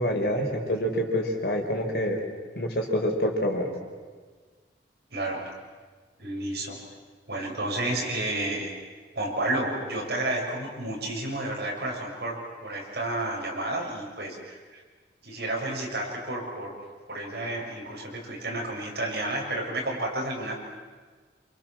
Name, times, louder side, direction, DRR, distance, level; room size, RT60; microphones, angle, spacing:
voice 1, 0.0-2.2 2.5-3.7, equal, 60° left, 1 dB, 4.9 m, -26 dB
voice 2, 5.1-5.5 6.2-6.8 7.3-8.7 9.1-14.8 15.2-16.8 17.1-20.6, right 1 dB, 65° right, -1 dB, 7.1 m, -31 dB
28.0 x 28.0 x 7.5 m, 1.4 s
head